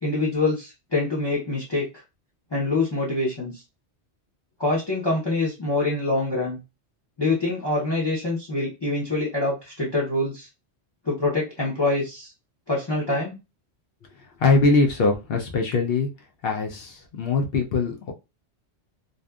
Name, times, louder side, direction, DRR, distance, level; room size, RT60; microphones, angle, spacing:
voice 1, 0.0-1.9 2.5-3.6 4.6-6.6 7.2-10.5 11.0-12.3 12.7-13.4, left 2 dB, 25° left, -5 dB, 0.7 m, -25 dB
voice 2, 14.4-16.1 16.4-18.1, left 3 dB, 65° left, 2 dB, 0.7 m, -22 dB
2.6 x 2.3 x 2.2 m, 0.26 s
omnidirectional pair, 1.2 m